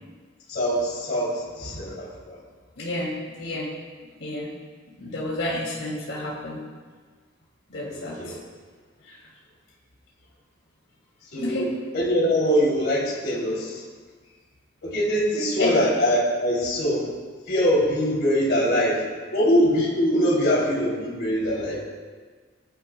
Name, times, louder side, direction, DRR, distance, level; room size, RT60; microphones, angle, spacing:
voice 1, 0.5-2.4 7.9-8.4 11.3-13.8 14.8-17.1 17.5-19.0 19.3-21.8, equal, 60° left, -5 dB, 3.3 m, -23 dB
voice 2, 2.8-3.7 4.2-4.5 5.0-6.6 7.7-8.2 9.1-9.2 11.4-11.7 15.6-15.7, left 1 dB, 85° left, -5 dB, 2.7 m, -30 dB
19.0 x 11.0 x 2.3 m, 1.5 s
head